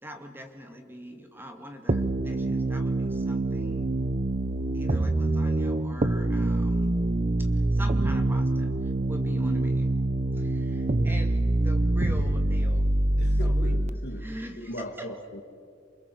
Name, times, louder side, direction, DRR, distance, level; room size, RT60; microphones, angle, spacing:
voice 1, 0.0-3.9 4.7-6.9 7.4-9.9 10.3-12.9 13.3-13.8 14.2-15.3, equal, 10° right, 4 dB, 2.3 m, -43 dB
sound 1, 1.9-13.9, right 2 dB, 35° right, 0.8 m, -25 dB
voice 2, 13.2-14.3 14.6-15.4, left 1 dB, 60° left, 5 dB, 2.6 m, -39 dB
28.5 x 24.5 x 8.1 m, 2.4 s
head